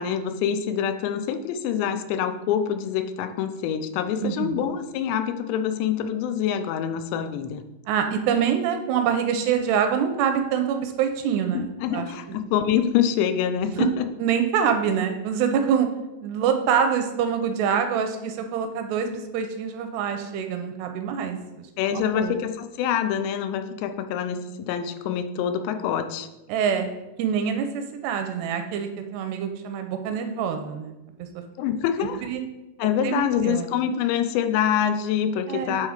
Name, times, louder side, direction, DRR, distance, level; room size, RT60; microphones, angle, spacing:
voice 1, 0.0-7.6 11.5-13.9 21.8-26.3 31.6-32.2 32.8-35.9, left 9 dB, 90° left, 9 dB, 2.9 m, -25 dB
voice 2, 4.2-4.7 7.9-12.4 13.8-13.9 14.2-15.9 16.2-21.7 21.9-22.4 26.5-26.9 27.2-30.9 31.2-31.3 32.2-32.4 33.0-33.2 33.4-33.7 35.5-35.9, right 7 dB, 85° right, 7 dB, 2.6 m, -25 dB
9.0 x 3.7 x 4.9 m, 1.0 s
omnidirectional pair, 4.9 m